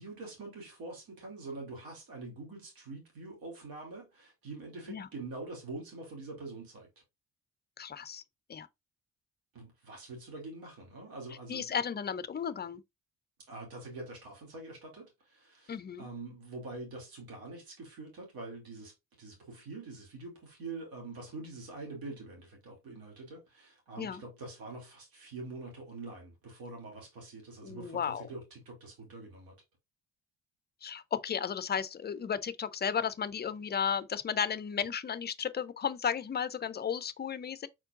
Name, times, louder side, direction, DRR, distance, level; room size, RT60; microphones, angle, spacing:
voice 1, 0.0-6.9 9.5-11.7 13.5-29.6, right 3 dB, 60° right, 2.8 m, -45 dB
voice 2, 7.8-8.2 8.5-8.7 11.5-12.8 15.7-16.1 24.0-24.2 27.6-28.2 30.8-37.7, left 7 dB, 25° left, 0.5 m, -34 dB
4.5 x 4.4 x 2.6 m
hypercardioid pair, 45°, 40 cm